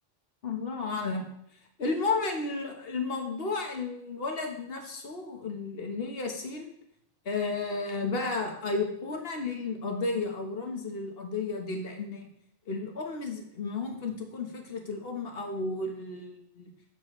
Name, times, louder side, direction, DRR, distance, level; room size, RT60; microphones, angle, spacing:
voice 1, 0.4-1.2 1.8-6.7 7.2-12.3 12.7-16.7, left 3 dB, 55° left, 3 dB, 1.3 m, -33 dB
7.8 x 6.9 x 3.1 m, 0.74 s
omnidirectional pair, 1.2 m